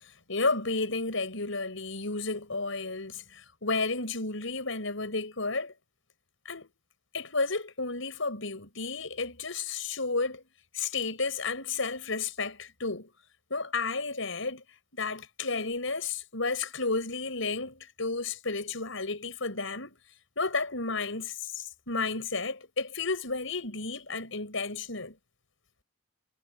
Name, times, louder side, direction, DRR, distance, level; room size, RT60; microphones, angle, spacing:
voice 1, 0.3-5.7 6.4-6.7 7.1-10.4 10.7-13.1 13.5-14.6 14.9-20.0 20.4-25.2, left 3 dB, 70° left, 6.6 m, -32 dB
head